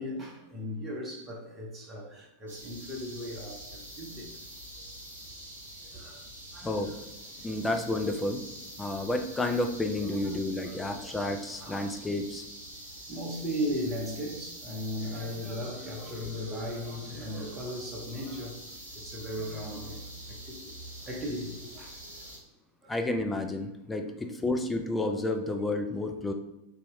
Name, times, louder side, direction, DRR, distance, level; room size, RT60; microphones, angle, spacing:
voice 1, 0.0-4.3 5.8-6.2 6.5-7.0 9.4-9.6 10.6-11.2 11.6-12.1 13.1-18.6 18.9-20.0 20.3-20.7 21.0-22.3 22.8-23.0, equal, 20° right, 0.8 m, -37 dB
sound 1, 2.5-22.4, right 1 dB, 70° right, 0.9 m, -45 dB
voice 2, 6.6-6.9 7.4-8.4 8.8-12.5 22.9-26.3, left 2 dB, 10° left, 0.3 m, -31 dB
2.8 x 2.3 x 3.0 m
figure-of-eight pair, 90°, 0 cm